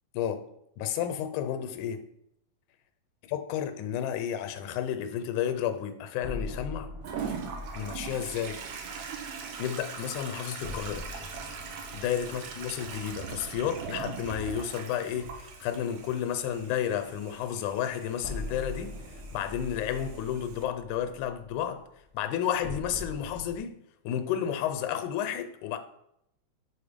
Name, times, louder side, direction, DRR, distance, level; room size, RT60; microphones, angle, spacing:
voice 1, 0.2-0.5 0.8-2.1 3.3-6.9 7.8-8.7 9.6-11.1 11.9-19.1 19.3-21.9 22.1-23.8 24.0-25.8, left 9 dB, 90° left, 2.1 m, -32 dB
sound 1, 6.2-14.0 14.3-14.4 18.2-23.6, left 2 dB, 5° right, 1.1 m, -43 dB
Toilet flush, 7.0-20.6, right 6 dB, 75° right, 2.1 m, -41 dB
5.6 x 4.4 x 5.1 m
omnidirectional pair, 3.4 m